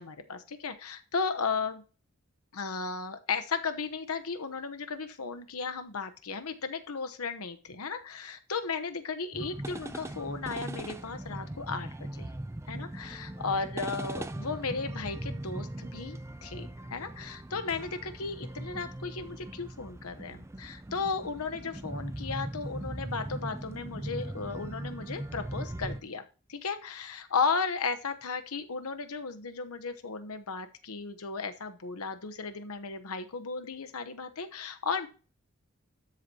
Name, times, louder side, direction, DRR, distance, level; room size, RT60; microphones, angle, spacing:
voice 1, 0.0-1.8 2.5-12.3 12.7-26.2 26.5-35.1, left 5 dB, 90° left, 8 dB, 1.0 m, -35 dB
sound 1, 9.3-26.0, right 1 dB, 15° right, 0.4 m, -39 dB
13.0 x 7.5 x 2.9 m, 0.36 s
head